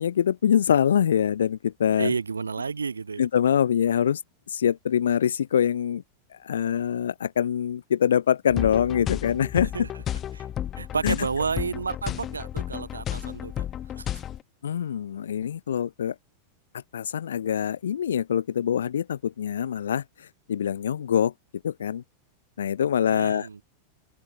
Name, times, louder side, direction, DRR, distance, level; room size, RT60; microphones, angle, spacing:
voice 1, 0.0-2.1 3.2-4.2 4.5-6.0 6.4-9.7 11.0-11.2 14.6-16.1 16.9-20.0 20.5-21.3 21.6-22.0 22.6-23.5, left 9 dB, 65° left, 0.5 m, -24 dB
voice 2, 2.0-3.3 9.7-9.9 10.3-10.4 10.8-13.7 14.0-14.1 23.0-23.6, right 5 dB, 75° right, 1.1 m, -30 dB
sound 1, 8.5-14.4, left 10 dB, 30° left, 0.8 m, -32 dB
open air
figure-of-eight pair, 90°, 0 cm